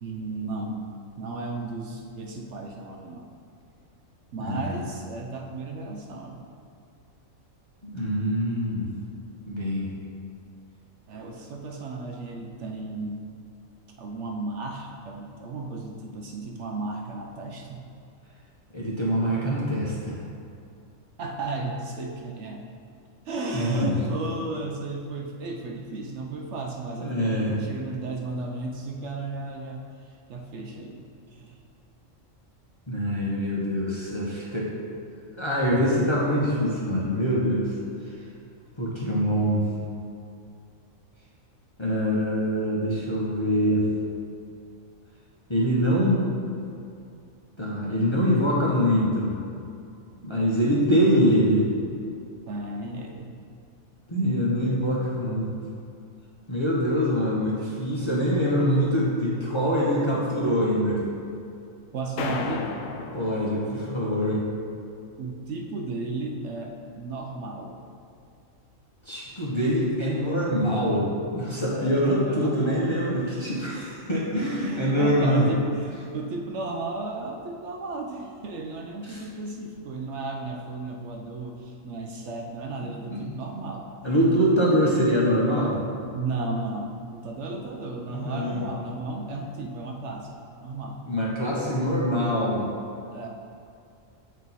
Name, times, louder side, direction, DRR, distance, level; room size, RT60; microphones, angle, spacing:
voice 1, 0.0-0.8 1.2-3.3 4.3-6.5 11.1-13.3 14.0-17.8 21.2-22.6 23.2-31.6 52.5-53.3 55.3-55.4 61.9-62.8 65.2-67.8 71.7-72.9 73.2-73.6 74.6-83.9 86.1-91.0 93.1-93.3, right 3 dB, 65° right, 1 dB, 0.8 m, -34 dB
voice 2, 4.4-4.7 7.9-8.9 9.5-9.9 18.7-20.2 23.5-24.0 27.0-27.5 32.9-34.7 35.4-37.7 38.8-39.6 41.8-43.8 45.5-46.2 47.6-49.4 50.2-51.7 54.1-55.5 56.5-61.0 63.1-64.4 69.0-71.1 71.3-75.5 79.1-79.2 83.1-83.2 84.0-85.8 88.0-88.6 91.1-92.7, equal, 25° left, -6 dB, 0.7 m, -24 dB
sound 1, 62.2-64.2, left 4 dB, 75° left, 0.9 m, -34 dB
7.2 x 4.4 x 4.1 m, 2.5 s
omnidirectional pair, 1.4 m